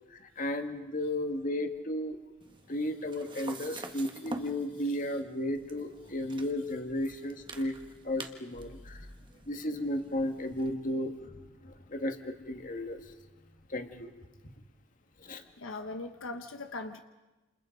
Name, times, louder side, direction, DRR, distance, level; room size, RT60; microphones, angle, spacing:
voice 1, 0.1-2.2 2.7-7.8 8.0-9.0 9.5-11.3 11.6-13.0 13.7-14.1 15.2-15.4, left 1 dB, 40° left, 6 dB, 1.8 m, -34 dB
sound 1, 2.4-10.7, right 2 dB, 25° right, 1.5 m, -47 dB
voice 2, 15.6-17.0, left 2 dB, 75° left, 7 dB, 1.1 m, -40 dB
29.0 x 28.5 x 5.3 m, 1.1 s
head